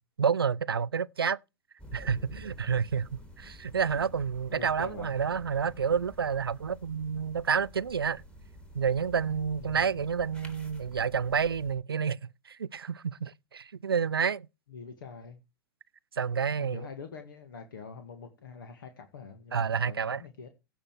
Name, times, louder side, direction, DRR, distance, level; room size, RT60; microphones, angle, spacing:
voice 1, 0.2-1.4 1.9-8.2 8.7-14.5 16.1-16.9 19.5-20.2, right 6 dB, 80° right, 0.4 m, -29 dB
sound 1, 1.8-11.8, left 1 dB, 10° left, 2.8 m, -50 dB
voice 2, 4.5-5.2 9.6-9.8 14.7-15.4 16.6-20.5, left 5 dB, 65° left, 1.9 m, -45 dB
16.0 x 5.5 x 4.6 m
figure-of-eight pair, 100°, 12 cm